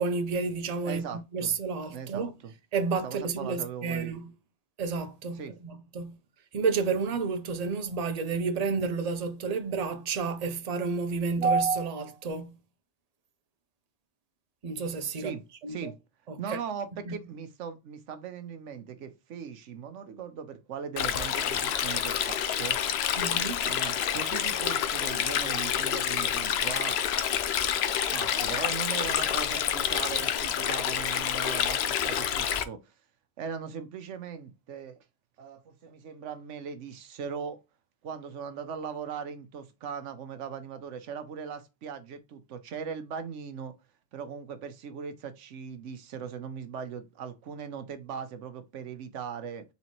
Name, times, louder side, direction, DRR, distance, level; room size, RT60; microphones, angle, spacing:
voice 1, 0.0-2.3 2.7-4.3 4.8-6.2 6.5-12.6 14.6-15.9 16.3-16.6 17.1-17.2 23.2-23.7, right 4 dB, 40° right, 0.6 m, -30 dB
voice 2, 0.8-1.5 1.9-2.5 3.0-4.1 5.3-5.5 15.2-15.4 15.7-15.9 16.4-22.8 23.6-27.0 28.1-32.9 33.4-35.0 35.4-37.6 38.0-43.7 44.1-49.6, right 7 dB, 85° right, 1.1 m, -39 dB
Stream, 21.0-32.6, left 9 dB, 65° left, 0.8 m, -28 dB
4.1 x 3.3 x 3.0 m
omnidirectional pair, 1.2 m